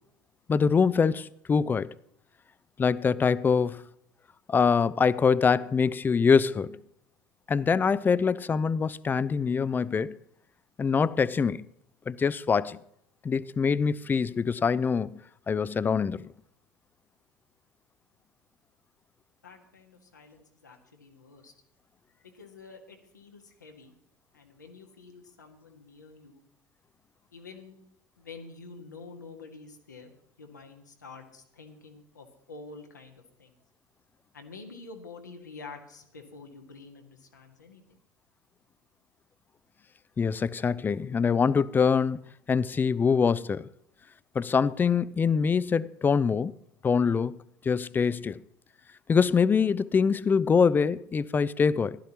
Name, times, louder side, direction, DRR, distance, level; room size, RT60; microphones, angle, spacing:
voice 1, 0.5-1.9 2.8-3.8 4.5-6.8 7.5-10.2 10.8-11.7 12.1-12.8 13.2-15.2 15.5-16.3 40.2-42.2 42.5-43.7 44.4-46.5 46.8-47.4 47.6-48.4 49.1-52.0, left 6 dB, 20° left, 0.4 m, -24 dB
voice 2, 19.4-21.5 22.2-23.9 24.3-26.4 27.3-27.8 28.2-30.1 30.4-33.5 34.3-38.0, left 4 dB, 90° left, 1.6 m, -48 dB
15.0 x 12.0 x 3.0 m
hypercardioid pair, 75°, 9 cm